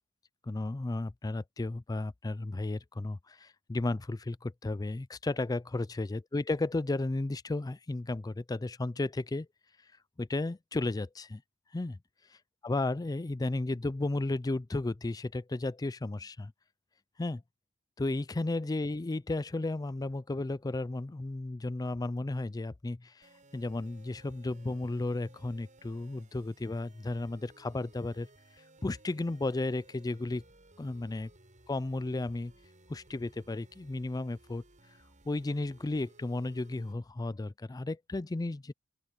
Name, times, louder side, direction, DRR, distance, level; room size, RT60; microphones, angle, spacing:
voice 1, 0.4-9.5 10.2-11.4 11.7-12.0 12.6-16.5 17.2-17.4 18.0-28.3 28.8-30.4 30.8-31.3 31.7-32.5 32.9-34.6 35.3-38.7, left 2 dB, 15° left, 0.4 m, -34 dB
sound 1, 23.2-36.9, right 2 dB, 35° right, 7.9 m, -60 dB
open air
head